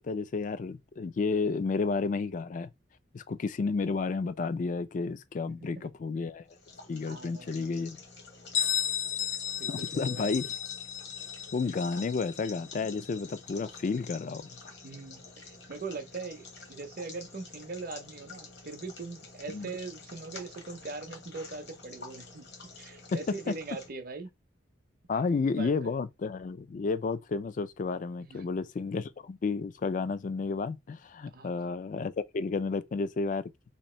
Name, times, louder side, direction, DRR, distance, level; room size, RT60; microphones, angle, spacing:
voice 1, 0.0-2.7 3.1-6.4 6.9-8.0 8.6-8.7 9.7-10.5 11.5-14.5 19.5-19.7 23.1-23.2 25.1-33.5, left 4 dB, 40° left, 0.3 m, -31 dB
sound 1, 6.5-23.9, left 4 dB, 60° left, 1.1 m, -49 dB
voice 2, 7.1-7.5 9.6-10.3 14.8-22.5 22.8-24.3 25.4-25.9 28.2-28.5 31.3-31.6, right 4 dB, 50° right, 0.6 m, -41 dB
Bell, 8.5-14.1, left 9 dB, 80° left, 0.6 m, -34 dB
2.9 x 2.6 x 4.2 m
head